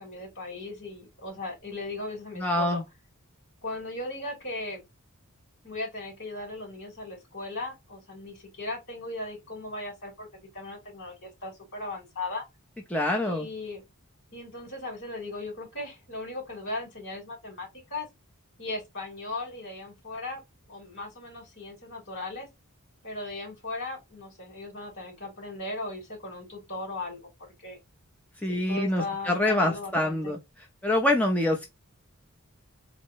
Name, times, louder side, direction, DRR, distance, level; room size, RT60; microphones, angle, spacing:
voice 1, 0.0-2.8 3.6-4.8 5.6-10.3 10.5-12.4 13.2-13.8 14.3-18.1 18.6-20.4 20.7-22.5 23.0-27.2 27.6-27.8 28.5-30.3, left 2 dB, 60° left, 3.0 m, -37 dB
voice 2, 2.4-2.8 12.9-13.5 28.4-30.4 30.8-31.7, left 1 dB, 5° left, 0.6 m, -25 dB
4.0 x 2.2 x 4.5 m
head